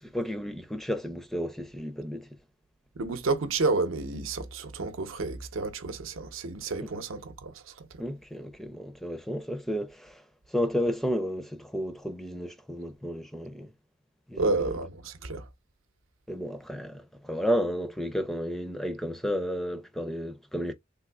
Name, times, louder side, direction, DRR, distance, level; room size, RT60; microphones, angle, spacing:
voice 1, 0.0-2.3 6.8-6.9 8.0-10.2 10.5-13.7 14.3-14.7 16.3-20.7, equal, ahead, 0.4 m, -32 dB
voice 2, 3.0-7.9 14.4-15.4, right 3 dB, 85° right, 0.7 m, -30 dB
3.6 x 2.6 x 2.2 m
head